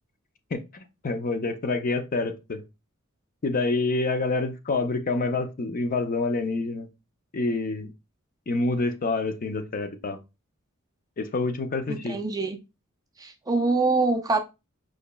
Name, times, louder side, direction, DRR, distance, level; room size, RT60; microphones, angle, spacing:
voice 1, 0.5-2.6 3.4-6.9 7.3-7.9 8.5-10.2 11.2-12.2, left 3 dB, 40° left, 0.5 m, -27 dB
voice 2, 11.9-12.6 13.2-14.4, right 3 dB, 15° right, 0.4 m, -24 dB
5.1 x 2.8 x 2.2 m
head